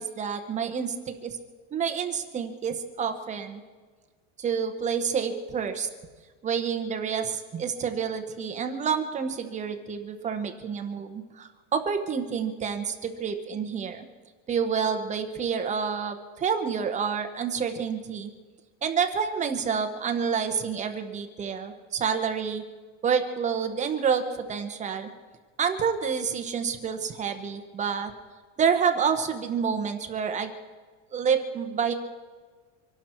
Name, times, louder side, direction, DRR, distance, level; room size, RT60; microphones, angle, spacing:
voice 1, 0.0-1.4 1.7-3.6 4.4-5.9 6.4-14.0 14.5-18.3 18.8-22.6 23.0-25.1 25.6-28.1 28.6-30.5 31.1-31.9, right 6 dB, 20° right, 6 dB, 0.9 m, -28 dB
25.5 x 12.0 x 4.5 m, 1.4 s
cardioid pair, 175°, 38 cm